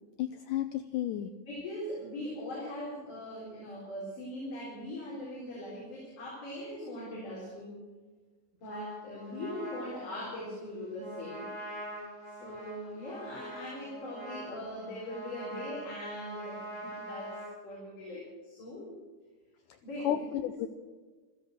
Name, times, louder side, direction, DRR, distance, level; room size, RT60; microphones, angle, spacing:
voice 1, 0.2-1.3 20.0-20.7, left 12 dB, 85° left, 9 dB, 1.9 m, -32 dB
voice 2, 1.5-7.8 8.6-11.5 12.4-17.3 17.6-19.0 19.8-20.5, left 1 dB, 55° left, -6 dB, 5.5 m, -41 dB
Trumpet, 8.7-17.6, right 1 dB, 10° left, 3.2 m, -44 dB
15.5 x 14.5 x 6.4 m, 1.3 s
omnidirectional pair, 4.4 m